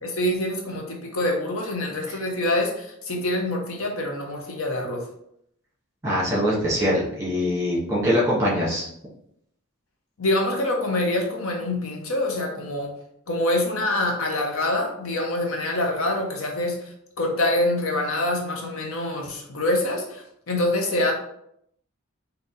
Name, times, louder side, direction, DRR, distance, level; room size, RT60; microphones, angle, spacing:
voice 1, 0.0-5.0 10.2-12.9 13.3-16.8 17.2-21.1, left 1 dB, 65° left, 1 dB, 0.8 m, -25 dB
voice 2, 6.0-8.9, equal, 15° right, -7 dB, 1.6 m, -23 dB
3.9 x 2.8 x 3.8 m, 0.73 s
head